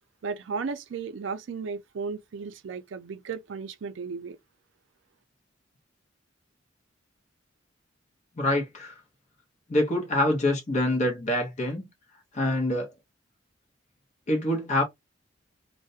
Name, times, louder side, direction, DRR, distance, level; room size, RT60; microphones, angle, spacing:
voice 1, 0.2-4.4, right 5 dB, 75° right, 0.4 m, -35 dB
voice 2, 8.4-8.9 9.7-11.8 12.3-12.9 14.3-14.8, left 1 dB, 40° left, 0.7 m, -25 dB
2.4 x 2.0 x 2.6 m
head